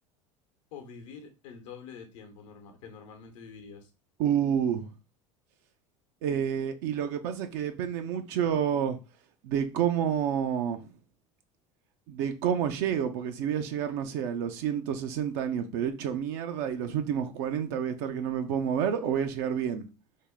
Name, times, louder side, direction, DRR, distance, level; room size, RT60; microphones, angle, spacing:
voice 1, 0.7-3.9, left 6 dB, 75° left, 0.9 m, -46 dB
voice 2, 4.2-4.9 6.2-9.0 9.4-10.8 12.1-19.9, right 8 dB, 65° right, 0.6 m, -29 dB
3.6 x 2.1 x 3.6 m
hypercardioid pair, 85°, 16 cm